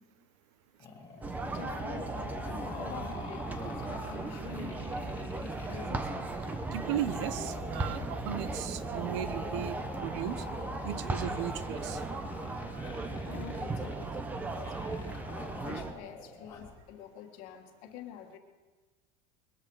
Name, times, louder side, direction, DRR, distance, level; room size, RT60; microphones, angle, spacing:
sound 1, 0.8-16.8, left 4 dB, 20° left, 2.1 m, -46 dB
voice 1, 1.2-6.1 13.3-18.4, left 9 dB, 50° left, 5 dB, 1.7 m, -48 dB
sound 2, 1.2-15.9, right 3 dB, 10° right, 0.7 m, -37 dB
voice 2, 6.7-10.4 10.8-12.0, right 11 dB, 60° right, 14 dB, 0.8 m, -36 dB
21.5 x 13.5 x 4.8 m, 1.3 s
cardioid pair, 180°, 16 cm